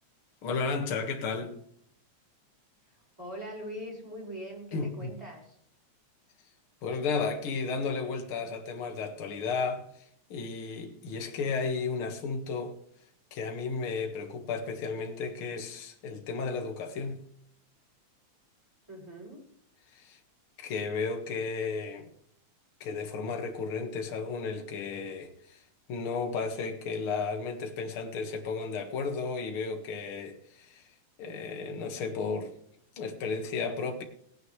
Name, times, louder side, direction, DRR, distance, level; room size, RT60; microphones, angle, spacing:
voice 1, 0.4-1.6 4.7-5.2 6.8-9.8 10.3-12.7 13.3-17.2 19.9-20.2 20.6-22.1 22.8-25.6 25.9-30.8 31.2-32.5 33.0-34.0, left 4 dB, 50° left, 2.2 m, -33 dB
voice 2, 3.2-5.6 18.9-19.4, equal, 10° right, 5.2 m, -42 dB
18.5 x 9.4 x 3.3 m
omnidirectional pair, 3.5 m